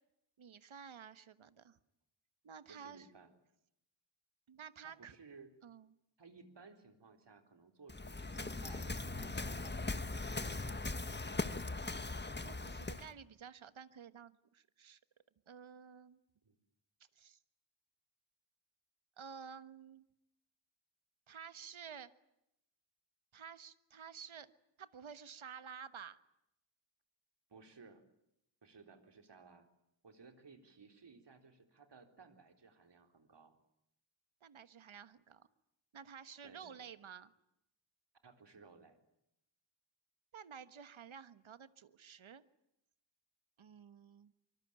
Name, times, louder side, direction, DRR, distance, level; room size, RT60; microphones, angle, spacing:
voice 1, 0.4-1.8 2.4-3.1 4.5-5.1 5.6-6.0 12.4-15.0 15.5-16.2 17.1-17.4 19.2-20.0 21.3-22.1 23.3-24.5 24.8-26.2 34.4-35.5 35.9-37.3 40.3-42.4 43.6-44.3, right 7 dB, 85° right, 13 dB, 1.4 m, -52 dB
voice 2, 2.7-3.3 4.8-5.5 6.2-10.8 16.4-16.5 27.5-28.0 28.6-29.7 30.0-33.6 36.4-36.9 38.2-39.0, right 4 dB, 60° right, 6 dB, 4.0 m, -59 dB
Waves surf, 7.9-13.1, left 3 dB, 20° left, 1.5 m, -40 dB
25.0 x 24.0 x 8.9 m, 0.82 s
wide cardioid pair, 110°, 46 cm